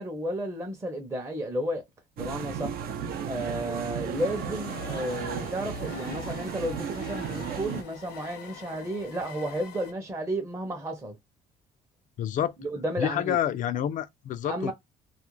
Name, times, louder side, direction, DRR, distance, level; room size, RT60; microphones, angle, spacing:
voice 1, 0.0-1.8 2.2-2.9 3.2-11.2 12.6-13.4 14.4-14.7, right 1 dB, 15° right, 0.6 m, -32 dB
sound 1, 2.2-7.8, right 7 dB, 65° right, 0.5 m, -34 dB
sound 2, 4.2-9.9, left 7 dB, 75° left, 0.8 m, -44 dB
voice 2, 12.2-12.5 13.0-14.7, left 10 dB, 50° left, 0.4 m, -28 dB
2.3 x 2.1 x 3.0 m
cardioid pair, 110°, 17 cm